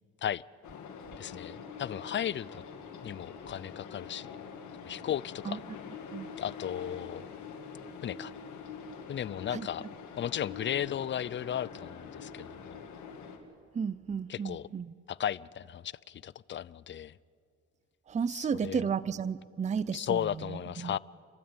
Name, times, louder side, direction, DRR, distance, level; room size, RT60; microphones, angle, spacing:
sound 1, 0.6-13.4, left 5 dB, 75° left, 2.4 m, -45 dB
voice 1, 1.2-2.6 3.0-4.3 4.8-5.6 6.4-7.3 8.0-8.3 9.1-9.8 10.2-12.8 14.3-14.7 15.1-17.2 18.3-18.9 19.9-21.0, left 10 dB, 40° left, 21 dB, 0.5 m, -35 dB
voice 2, 13.7-14.9 18.1-20.9, right 6 dB, 25° right, 19 dB, 0.5 m, -33 dB
29.5 x 12.5 x 8.9 m, 2.4 s
cardioid pair, 90°, 30 cm